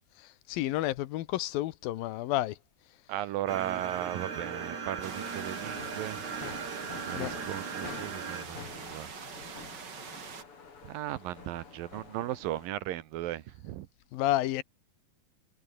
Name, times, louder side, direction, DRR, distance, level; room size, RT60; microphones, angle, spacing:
voice 1, 0.5-2.6 7.1-7.3 14.1-14.6, left 15 dB, 80° left, 2.8 m, -30 dB
voice 2, 3.1-6.2 7.1-9.1 10.8-13.9, right 13 dB, 75° right, 2.8 m, -36 dB
sound 1, 3.5-8.4, right 5 dB, 55° right, 5.3 m, -38 dB
sound 2, 5.0-12.7, left 5 dB, 40° left, 3.9 m, -48 dB
sound 3, 5.0-10.4, right 6 dB, 35° right, 2.1 m, -44 dB
omnidirectional pair, 4.1 m